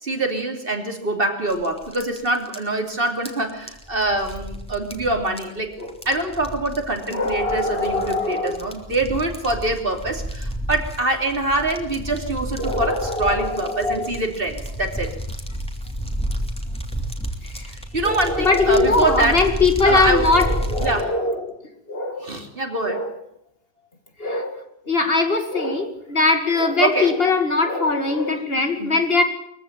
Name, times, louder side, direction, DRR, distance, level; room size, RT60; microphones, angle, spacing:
voice 1, 0.0-5.7 6.0-15.1 17.7-19.4 19.8-20.3 20.8-21.1 22.2-23.0 26.8-27.1 28.5-28.9, right 2 dB, 50° right, 4 dB, 3.3 m, -24 dB
sound 1, 1.5-21.0, equal, 5° left, 3.1 m, -31 dB
voice 2, 7.1-8.7 12.6-14.1 17.5-17.7 18.0-22.3 22.8-23.1 24.2-24.6 24.9-29.2, left 3 dB, 55° left, 6 dB, 2.6 m, -21 dB
23.0 x 15.5 x 9.0 m, 0.75 s
omnidirectional pair, 1.2 m